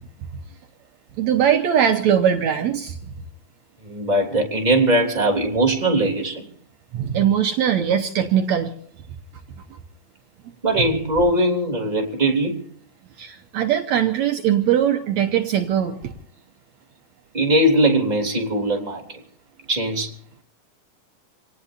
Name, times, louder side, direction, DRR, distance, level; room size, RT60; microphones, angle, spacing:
voice 1, 1.2-3.0 6.9-8.7 13.2-16.1, right 9 dB, 70° right, 5 dB, 2.1 m, -20 dB
voice 2, 3.8-6.5 10.6-12.6 17.3-19.2 19.7-20.1, right 1 dB, 15° right, 1 dB, 2.9 m, -20 dB
27.5 x 19.0 x 2.7 m, 0.63 s
omnidirectional pair, 3.6 m